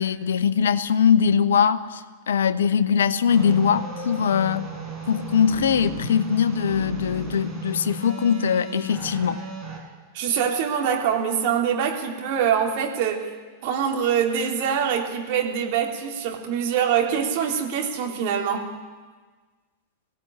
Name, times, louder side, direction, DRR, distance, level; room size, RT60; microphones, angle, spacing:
voice 1, 0.0-4.7 5.1-9.4, left 7 dB, 65° left, 14 dB, 0.9 m, -21 dB
sound 1, 3.3-9.8, right 3 dB, 20° right, 5.6 m, -35 dB
voice 2, 10.1-13.3 13.6-18.7, right 8 dB, 45° right, 1 dB, 3.2 m, -24 dB
20.5 x 16.0 x 8.8 m, 1.4 s
figure-of-eight pair, 90°, 0 cm